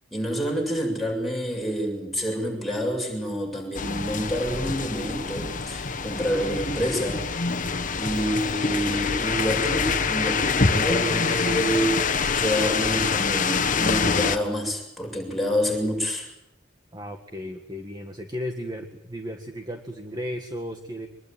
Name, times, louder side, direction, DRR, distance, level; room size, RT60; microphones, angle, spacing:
voice 1, 0.1-7.2 8.0-16.3, equal, ahead, -1 dB, 7.2 m, -28 dB
sound 1, 3.7-14.4, left 5 dB, 45° left, 1.4 m, -25 dB
voice 2, 16.9-21.1, equal, 20° right, 5 dB, 1.7 m, -35 dB
24.5 x 21.5 x 9.3 m, 0.85 s
head